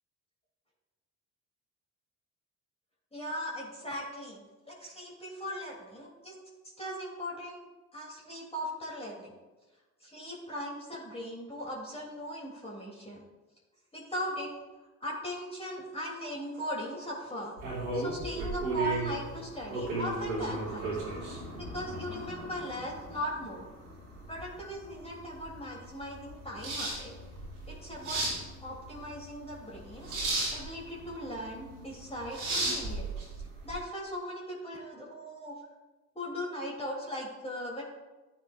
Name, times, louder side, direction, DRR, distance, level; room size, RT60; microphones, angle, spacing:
voice 1, 3.1-6.4 6.8-7.7 7.9-9.4 10.0-13.2 13.9-14.5 15.0-17.6 17.9-21.0 21.6-23.7 24.3-27.1 27.7-28.2 28.6-30.2 30.5-33.1 33.3-35.6 36.1-37.8, equal, 15° left, -5 dB, 3.3 m, -39 dB
sound 1, 17.6-33.8, right 2 dB, 85° right, 3.1 m, -35 dB
13.5 x 9.1 x 2.6 m, 1.2 s
hypercardioid pair, 50°, 43 cm